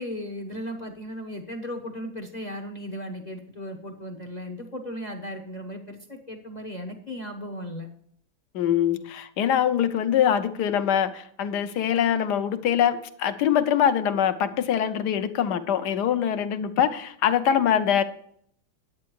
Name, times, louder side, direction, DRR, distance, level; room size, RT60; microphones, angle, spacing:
voice 1, 0.0-7.9, equal, 35° left, 4 dB, 0.7 m, -36 dB
voice 2, 8.5-18.0, left 9 dB, 65° left, 10 dB, 1.3 m, -23 dB
10.5 x 8.6 x 4.6 m, 0.66 s
omnidirectional pair, 2.1 m